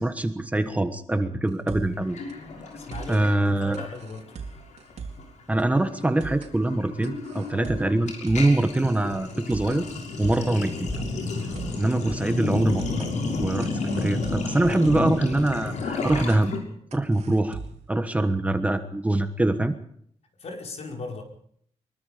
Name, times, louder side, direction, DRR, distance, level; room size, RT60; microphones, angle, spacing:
voice 1, 0.0-2.2 3.1-3.9 5.5-9.8 10.2-10.7 11.8-12.8 13.4-16.5 16.9-17.6 17.9-19.7, right 2 dB, 10° right, 8 dB, 1.3 m, -24 dB
sound 1, 1.5-2.0 2.3-2.4 2.7-3.2 3.7-5.3 5.6-5.7 6.0-6.6 7.0-8.6 8.9-9.0 9.3-9.8 10.3-11.9 12.2-12.3 12.6-13.1 13.6-15.2 15.5-15.6 15.9-16.4 16.9-17.9, right 5 dB, 70° right, 4.1 m, -39 dB
Sink (filling or washing), 2.1-4.3 4.6-4.9 5.2-16.6, left 3 dB, 85° left, 6.3 m, -32 dB
voice 2, 2.8-4.3 20.4-21.2, left 3 dB, 60° left, 2 dB, 5.1 m, -37 dB
sound 2, 10.2-10.5 10.9-11.2 11.5-12.3 12.7-12.9 13.4-13.6 14.0-14.2 14.6-14.8 15.3-15.5 16.1-16.4, left 2 dB, 25° left, 3.8 m, -39 dB
24.0 x 23.0 x 5.1 m, 0.65 s
wide cardioid pair, 170°, 12 cm